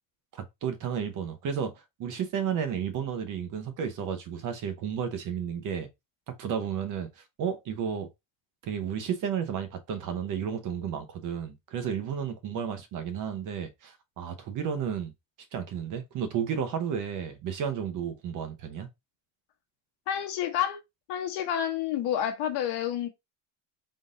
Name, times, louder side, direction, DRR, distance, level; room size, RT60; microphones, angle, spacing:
voice 1, 0.3-5.9 6.3-8.1 8.6-15.1 15.5-18.9, right 7 dB, 45° right, 0.8 m, -32 dB
voice 2, 20.1-20.8 21.1-23.1, left 10 dB, 65° left, 1.1 m, -29 dB
3.8 x 2.6 x 3.7 m
cardioid pair, 155°, 44 cm